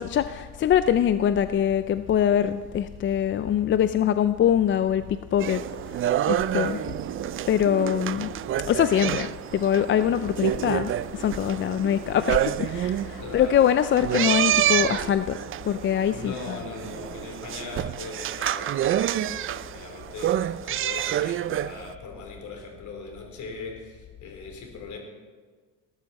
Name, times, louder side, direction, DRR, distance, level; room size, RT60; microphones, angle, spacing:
voice 1, 0.0-5.6 6.3-6.8 7.5-8.3 8.6-15.4 15.6-16.6, left 9 dB, 35° left, 12 dB, 0.4 m, -23 dB
sound 1, 5.4-21.9, right 12 dB, 40° right, 0.4 m, -28 dB
voice 2, 6.6-6.9 13.2-13.7 16.1-25.0, left 4 dB, 60° left, 2 dB, 3.6 m, -40 dB
18.5 x 12.5 x 4.2 m, 1.5 s
cardioid pair, 110°, 34 cm